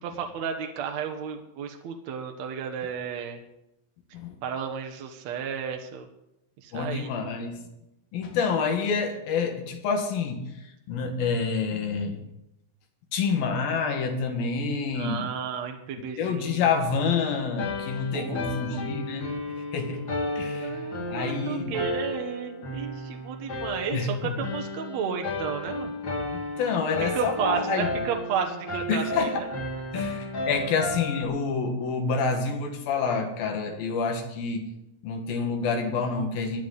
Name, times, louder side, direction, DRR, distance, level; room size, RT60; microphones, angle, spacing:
voice 1, 0.0-3.4 4.4-6.1 6.6-7.3 14.9-16.7 18.1-18.8 20.6-25.9 27.1-29.5 29.9-30.1, right 7 dB, 65° right, 4 dB, 2.0 m, -33 dB
voice 2, 6.7-7.7 8.1-10.5 10.9-12.2 13.1-15.3 16.2-19.3 19.7-20.1 20.4-21.9 23.9-24.4 26.3-27.9 28.9-29.4 29.9-34.7 35.0-36.6, left 5 dB, 80° left, 5 dB, 3.5 m, -28 dB
sound 1, 17.6-31.2, left 1 dB, 40° left, 2.2 m, -33 dB
25.5 x 10.5 x 4.0 m, 0.87 s
omnidirectional pair, 4.2 m